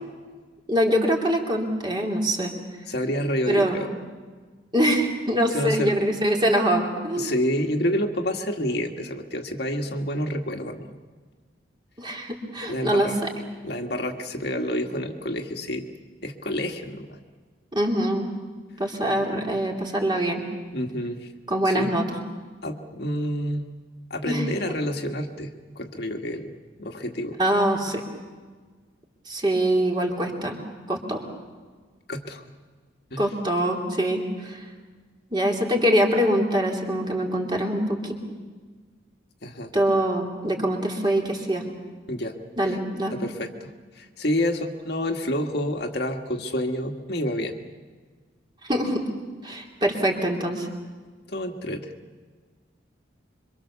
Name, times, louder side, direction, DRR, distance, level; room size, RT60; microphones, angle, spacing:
voice 1, 0.7-2.5 3.5-3.8 4.7-7.3 12.0-13.1 17.7-18.3 18.8-20.4 21.5-22.0 24.3-24.4 27.4-28.0 29.3-30.6 30.9-31.2 33.2-34.6 35.3-38.2 39.7-41.6 42.6-43.2 48.7-49.1 49.4-50.7, equal, 25° right, 0 dB, 3.2 m, -24 dB
voice 2, 2.9-3.9 5.5-6.0 7.2-10.9 12.7-13.2 13.6-15.9 16.2-17.1 20.7-21.3 21.7-21.9 22.6-23.7 24.1-27.4 32.1-32.4 33.1-33.3 39.4-39.7 42.1-42.3 43.1-47.6 51.3-51.9, equal, 55° left, 3 dB, 1.8 m, -28 dB
26.5 x 24.5 x 7.0 m, 1.5 s
head